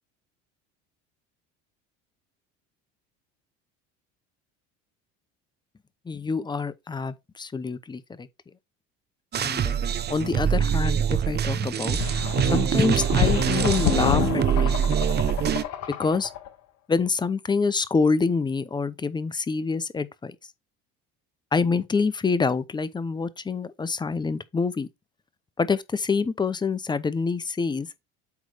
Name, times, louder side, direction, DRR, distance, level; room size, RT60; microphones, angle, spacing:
voice 1, 6.1-8.3 9.3-9.8 10.1-12.0 12.4-14.7 16.0-16.3 16.9-20.4 21.5-24.9 25.6-27.9, left 4 dB, 15° left, 0.6 m, -26 dB
sound 1, 9.3-15.6, right 8 dB, 35° right, 0.7 m, -24 dB
sound 2, 11.9-16.5, left 12 dB, 55° left, 1.1 m, -29 dB
8.2 x 3.2 x 4.9 m
supercardioid pair, 100°, 31 cm